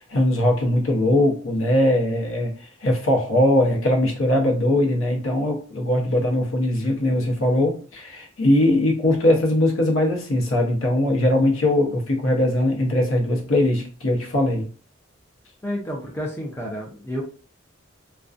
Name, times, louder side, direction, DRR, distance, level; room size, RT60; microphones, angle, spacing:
voice 1, 0.0-14.7, left 1 dB, 85° left, 1 dB, 0.8 m, -20 dB
voice 2, 15.6-17.2, equal, 10° left, -1 dB, 0.4 m, -30 dB
2.4 x 2.2 x 2.4 m, 0.39 s
head